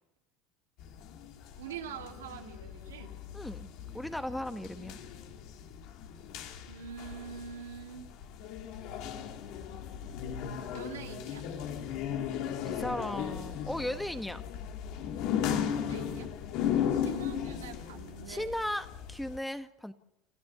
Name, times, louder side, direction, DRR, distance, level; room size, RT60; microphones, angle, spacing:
sound 1, 0.8-19.4, left 9 dB, 65° left, 2.7 m, -36 dB
voice 1, 1.6-3.1 6.7-8.1 10.7-11.4 15.7-16.3 16.9-18.5, right 8 dB, 90° right, 3 dB, 2.7 m, -44 dB
voice 2, 3.3-3.7 3.9-5.0 12.6-14.4 18.3-19.9, left 1 dB, 5° left, 10 dB, 1.4 m, -36 dB
28.0 x 14.0 x 7.0 m, 0.85 s
hypercardioid pair, 85°, 0 cm